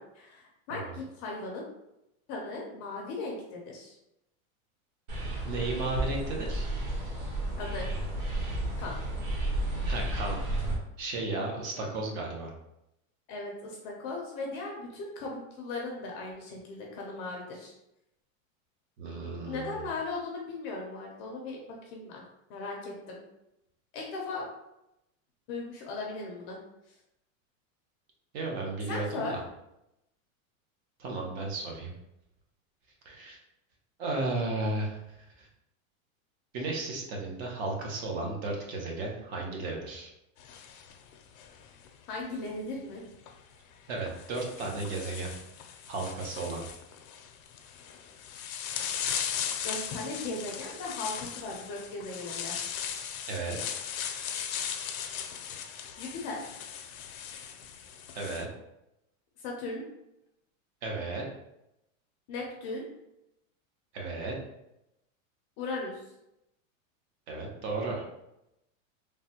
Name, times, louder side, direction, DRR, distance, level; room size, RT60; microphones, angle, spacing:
voice 1, 0.0-1.6 2.3-4.0 7.6-7.9 8.8-8.9 11.7-11.9 13.3-17.7 19.5-22.2 22.5-23.2 23.9-24.5 25.5-26.6 28.9-29.4 42.1-43.0 49.6-52.6 56.0-56.4 59.4-59.9 62.3-62.9 65.6-66.0, left 3 dB, 30° left, -1 dB, 0.5 m, -37 dB
sound 1, 5.1-10.8, right 1 dB, 90° right, 1.2 m, -32 dB
voice 2, 5.5-6.7 9.8-10.4 11.0-12.5 19.0-19.9 28.3-29.4 31.0-31.9 33.0-33.4 34.0-35.5 36.5-40.1 43.9-45.4 45.9-46.6 53.3-53.6 58.1-58.5 60.8-61.2 63.9-64.3 67.3-68.0, right 3 dB, 50° right, -1 dB, 0.9 m, -34 dB
sound 2, 40.4-41.9 43.1-43.3 44.1-58.4, left 8 dB, 80° left, 0.6 m, -38 dB
3.2 x 2.2 x 2.8 m, 0.86 s
supercardioid pair, 150°, 41 cm